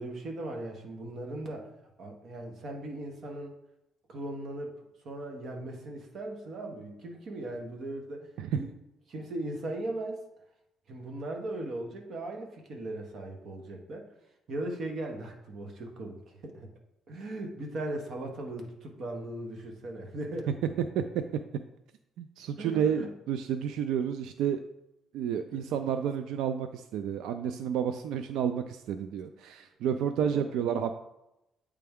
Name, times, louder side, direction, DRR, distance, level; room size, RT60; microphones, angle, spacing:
voice 1, 0.0-1.7 2.0-3.5 4.1-4.8 5.0-8.3 8.6-8.7 9.1-10.2 10.9-14.1 14.5-16.7 17.1-20.5 22.6-23.1 25.5-25.8 30.3-30.5, right 1 dB, 45° right, 2 dB, 1.0 m, -38 dB
voice 2, 20.8-21.2 22.2-24.6 25.1-30.9, right 8 dB, 85° right, 8 dB, 0.3 m, -30 dB
8.4 x 3.4 x 3.5 m, 0.87 s
cardioid pair, 170°, 0 cm